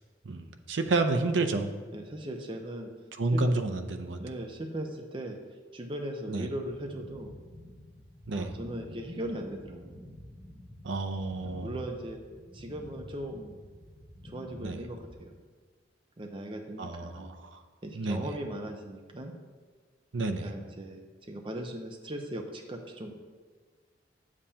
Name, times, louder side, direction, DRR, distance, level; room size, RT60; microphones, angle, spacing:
voice 1, 0.3-1.7 3.2-4.2 6.3-6.5 8.3-8.5 10.8-11.7 14.6-14.8 16.8-17.6 17.9-18.3 20.1-20.5, right 2 dB, 80° right, 7 dB, 0.6 m, -30 dB
voice 2, 1.9-2.9 3.3-3.4 4.2-5.4 5.7-7.3 8.3-10.0 11.4-12.2 12.5-13.6 14.2-15.3 16.2-17.3 17.8-19.4 20.4-23.1, right 1 dB, 30° right, 3 dB, 0.6 m, -38 dB
sound 1, 6.6-15.1, left 1 dB, 10° left, 2.3 m, -49 dB
8.5 x 7.4 x 2.8 m, 1.5 s
head